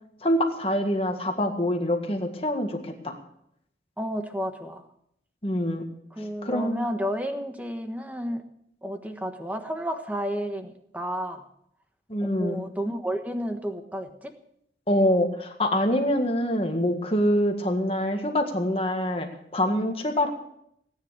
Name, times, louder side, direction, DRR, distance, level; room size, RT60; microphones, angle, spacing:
voice 1, 0.2-3.2 5.4-5.8 6.4-6.9 12.1-12.6 14.9-20.3, left 1 dB, 30° left, 4 dB, 1.9 m, -25 dB
voice 2, 4.0-4.9 6.1-8.4 8.8-11.5 12.2-14.3, equal, 10° right, 6 dB, 1.3 m, -31 dB
18.0 x 9.9 x 6.6 m, 0.73 s
head